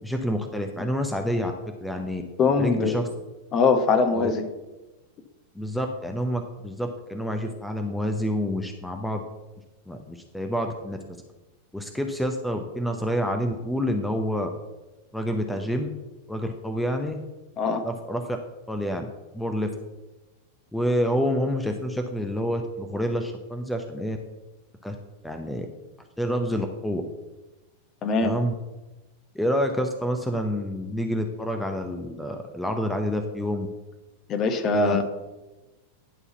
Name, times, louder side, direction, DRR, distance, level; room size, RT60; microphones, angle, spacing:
voice 1, 0.0-2.2 2.6-3.1 4.1-4.3 5.5-9.2 9.9-11.0 11.7-14.5 15.1-15.9 16.3-17.2 17.8-18.4 18.7-19.1 19.3-19.7 20.7-24.2 24.8-25.0 25.2-25.7 26.2-27.0 28.2-28.5 29.3-33.7 34.7-35.0, equal, 5° left, 5 dB, 0.8 m, -28 dB
voice 2, 2.4-3.0 3.5-4.5 17.6-17.8 28.0-28.3 34.3-35.0, left 4 dB, 30° left, 7 dB, 1.1 m, -22 dB
11.0 x 4.1 x 6.9 m, 1.1 s
figure-of-eight pair, 90°, 0 cm